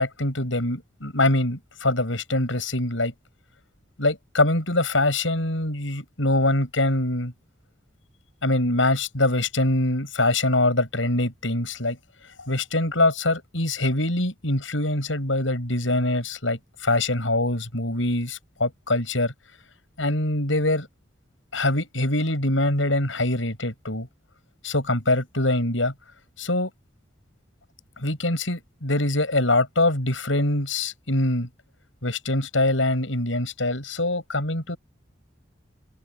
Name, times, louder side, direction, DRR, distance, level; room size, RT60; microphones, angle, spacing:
voice 1, 0.0-3.1 4.0-7.3 8.4-12.0 12.4-19.3 20.0-20.9 21.5-24.1 24.6-25.9 26.4-26.7 28.0-31.5 32.0-34.8, left 2 dB, 80° left, 7.8 m, -24 dB
open air
head